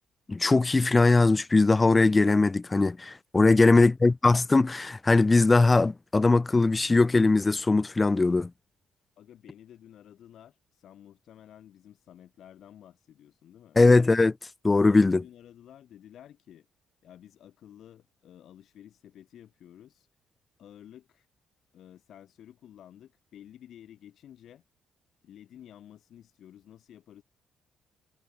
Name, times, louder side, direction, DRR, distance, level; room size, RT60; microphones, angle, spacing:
voice 1, 0.3-8.5 13.8-14.3 14.6-15.2, left 3 dB, 20° left, 0.9 m, -20 dB
voice 2, 9.2-13.8 14.8-16.7 17.0-20.1 20.6-21.3 21.7-24.6 25.2-27.2, left 10 dB, 70° left, 6.2 m, -52 dB
cardioid pair, 90°, 0 cm